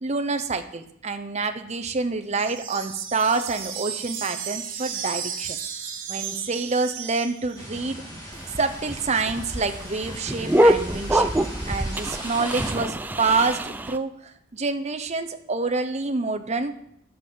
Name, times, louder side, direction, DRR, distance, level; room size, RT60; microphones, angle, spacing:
voice 1, 0.0-5.6 6.1-8.0 8.6-11.3 11.7-14.1 14.5-16.7, right 4 dB, 35° right, 7 dB, 0.8 m, -27 dB
sound 1, 2.3-7.8, right 7 dB, 75° right, 1.6 m, -34 dB
sound 2, 7.6-12.7, equal, 20° left, 2.7 m, -39 dB
sound 3, 8.3-14.0, right 1 dB, 10° right, 0.4 m, -24 dB
10.5 x 5.6 x 6.9 m, 0.71 s
head